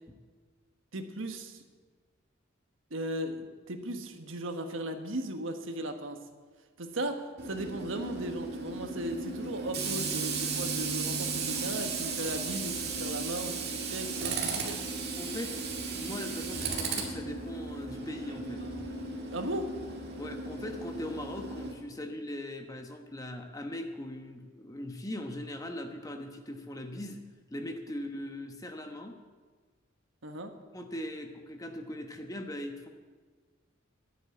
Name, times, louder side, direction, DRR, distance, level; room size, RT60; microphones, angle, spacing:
voice 1, 0.9-1.6 2.9-6.2 6.8-14.8 19.3-19.7 30.2-30.5, right 1 dB, 70° right, 6 dB, 1.3 m, -37 dB
Tools, 7.4-21.7, right 4 dB, 50° right, 2.3 m, -35 dB
voice 2, 15.2-15.5 15.9-18.6 20.2-27.2 27.5-29.2 30.7-32.9, left 1 dB, 15° left, 5 dB, 1.1 m, -40 dB
10.5 x 8.9 x 8.6 m, 1.5 s
head